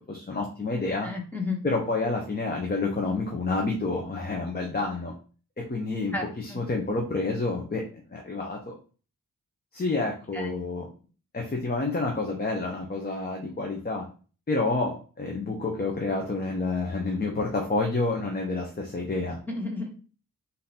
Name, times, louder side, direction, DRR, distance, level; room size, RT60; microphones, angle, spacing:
voice 1, 0.1-1.1 1.6-5.1 5.6-8.7 9.7-10.9 11.3-14.0 14.5-19.4, left 3 dB, 25° left, 0 dB, 0.8 m, -29 dB
voice 2, 1.0-1.7 6.1-6.6 10.3-10.6 19.5-19.9, left 3 dB, 5° left, 0 dB, 1.1 m, -33 dB
3.8 x 2.7 x 4.1 m, 0.38 s
wide cardioid pair, 100°, 35 cm